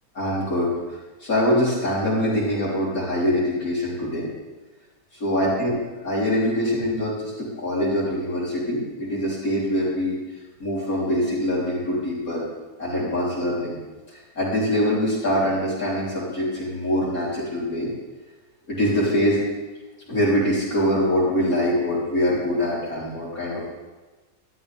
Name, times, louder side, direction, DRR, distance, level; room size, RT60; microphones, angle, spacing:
voice 1, 0.2-0.7 1.2-4.3 5.2-5.8 6.0-10.2 10.6-12.4 12.8-13.8 14.1-17.9 18.7-19.4 20.1-23.7, equal, 50° left, -6 dB, 4.1 m, -23 dB
13.0 x 12.0 x 3.5 m, 1.2 s
omnidirectional pair, 1.9 m